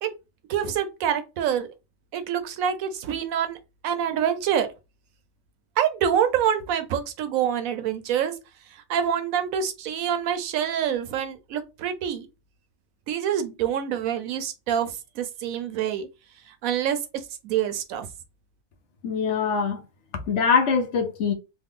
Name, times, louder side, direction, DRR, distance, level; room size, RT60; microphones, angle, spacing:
voice 1, 0.5-1.7 2.1-3.6 3.8-4.7 5.8-8.3 8.9-12.3 13.1-16.1 16.5-18.1, right 9 dB, 80° right, 1.0 m, -26 dB
voice 2, 19.0-19.8 20.3-21.3, left 5 dB, 65° left, 0.9 m, -23 dB
3.2 x 2.1 x 3.6 m
omnidirectional pair, 1.4 m